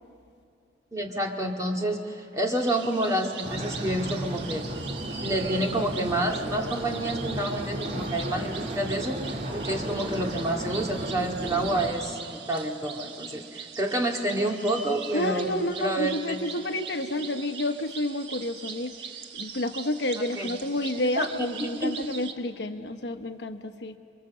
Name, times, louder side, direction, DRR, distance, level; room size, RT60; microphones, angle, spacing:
voice 1, 0.9-4.7 5.2-15.5 15.8-16.4 20.4-20.5 20.9-21.3 21.6-21.9, right 1 dB, 20° right, 1 dB, 2.0 m, -29 dB
sound 1, 2.5-22.3, right 6 dB, 70° right, 1.3 m, -41 dB
sound 2, 3.4-11.9, right 1 dB, 45° right, 2.8 m, -34 dB
voice 2, 15.1-18.9 19.3-24.0, left 1 dB, 65° left, 7 dB, 1.0 m, -30 dB
29.5 x 23.5 x 7.5 m, 2.4 s
head